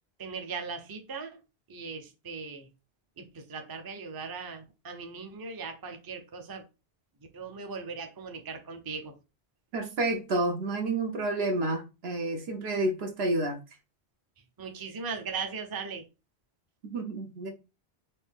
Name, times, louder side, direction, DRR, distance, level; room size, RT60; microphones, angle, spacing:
voice 1, 0.2-1.3 1.7-2.7 3.2-6.6 7.3-9.1 14.6-16.0, right 5 dB, 25° right, 0.5 m, -38 dB
voice 2, 9.7-13.6 16.9-17.5, right 2 dB, 70° right, 1.1 m, -29 dB
4.2 x 2.7 x 3.5 m
omnidirectional pair, 1.1 m